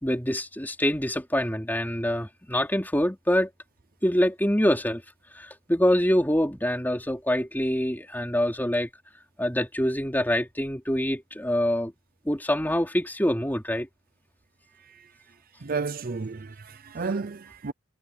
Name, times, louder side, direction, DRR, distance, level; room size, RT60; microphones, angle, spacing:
voice 1, 0.0-3.5 4.0-5.0 5.3-8.9 9.4-11.9 12.3-13.9, equal, 10° left, 3.3 m, -25 dB
voice 2, 15.6-17.7, right 4 dB, 45° right, 0.6 m, -32 dB
head